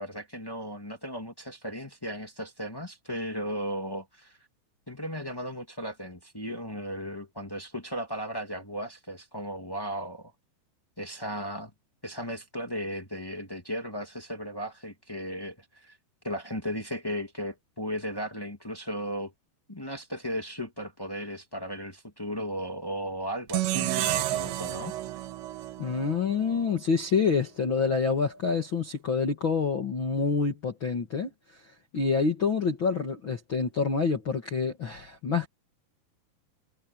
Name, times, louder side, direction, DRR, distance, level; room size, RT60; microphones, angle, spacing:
voice 1, 0.0-4.4 4.9-10.3 11.0-11.7 12.0-16.0 16.2-19.3 19.7-24.9, equal, 25° left, 0.4 m, -36 dB
sound 1, 23.5-26.7, right 15 dB, 80° right, 3.3 m, -31 dB
voice 2, 25.8-31.3 31.6-35.5, left 5 dB, 60° left, 1.3 m, -27 dB
omnidirectional pair, 5.2 m